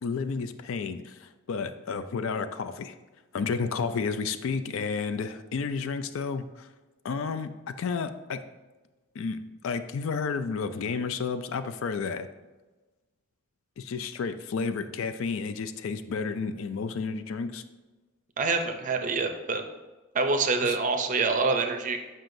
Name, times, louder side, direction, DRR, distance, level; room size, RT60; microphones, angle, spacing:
voice 1, 0.0-3.0 3.3-6.7 7.0-8.4 9.2-12.3 13.8-17.6 20.6-20.8, left 5 dB, 65° left, 11 dB, 0.4 m, -31 dB
voice 2, 18.4-19.6 20.1-22.0, right 4 dB, 35° right, 6 dB, 0.5 m, -26 dB
7.5 x 5.4 x 2.6 m, 1.2 s
head